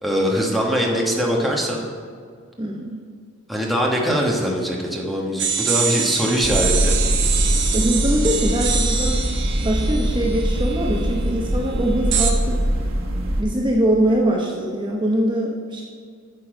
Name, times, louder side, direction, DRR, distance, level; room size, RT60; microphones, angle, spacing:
voice 1, 0.0-1.8 3.5-7.0, equal, ahead, -2 dB, 1.2 m, -22 dB
voice 2, 2.6-3.0 7.7-9.2 9.6-12.6 13.4-15.8, right 1 dB, 25° right, -1 dB, 0.8 m, -22 dB
sound 1, 5.4-11.1 12.1-12.3, right 7 dB, 60° right, 1.0 m, -25 dB
sound 2, 6.4-13.4, equal, 90° right, 1.3 m, -22 dB
9.1 x 7.0 x 4.9 m, 2.1 s
head